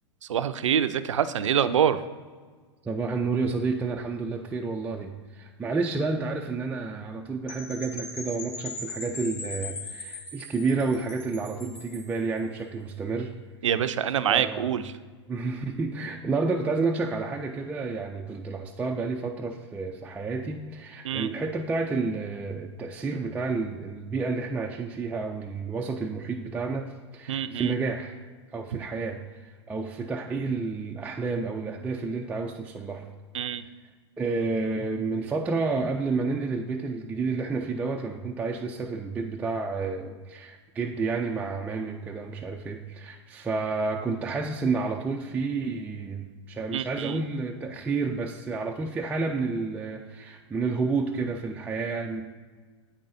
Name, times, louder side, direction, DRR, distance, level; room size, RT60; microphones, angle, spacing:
voice 1, 0.3-2.0 13.6-14.8 21.0-21.3 27.3-27.7 33.3-33.6 46.7-47.2, right 9 dB, 85° right, 12 dB, 0.4 m, -25 dB
voice 2, 2.8-13.3 14.3-14.8 15.3-28.2 28.5-33.1 34.2-52.2, right 4 dB, 10° right, 1 dB, 0.3 m, -30 dB
Percussion / Wind chime, 7.5-12.2, left 3 dB, 40° left, 1.6 m, -39 dB
8.6 x 5.3 x 2.6 m, 1.5 s
hypercardioid pair, 110°, 15 cm